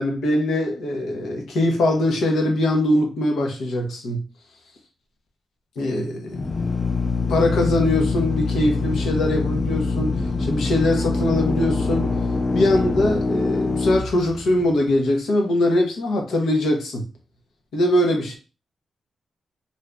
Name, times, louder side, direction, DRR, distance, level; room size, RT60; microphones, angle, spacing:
voice 1, 0.0-4.2 5.8-6.5 7.3-12.1 12.5-17.1 17.7-18.4, left 1 dB, 85° left, 0.9 m, -22 dB
Drill, 6.3-14.9, left 4 dB, 30° left, 0.3 m, -24 dB
2.7 x 2.5 x 3.3 m
cardioid pair, 110°, 0 cm